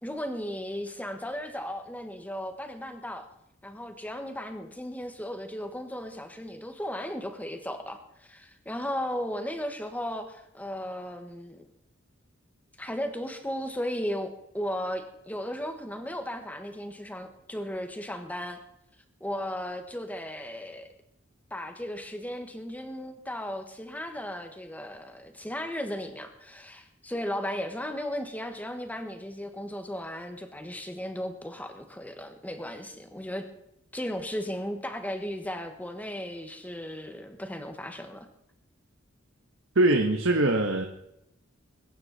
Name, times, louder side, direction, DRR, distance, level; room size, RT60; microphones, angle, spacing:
voice 1, 0.0-3.3 3.6-11.6 12.8-18.6 19.2-20.9 21.5-33.5 33.9-38.3, equal, 10° left, 6 dB, 1.5 m, -36 dB
voice 2, 39.7-40.9, right 2 dB, 75° right, 4 dB, 1.3 m, -22 dB
21.5 x 10.0 x 4.2 m, 0.80 s
head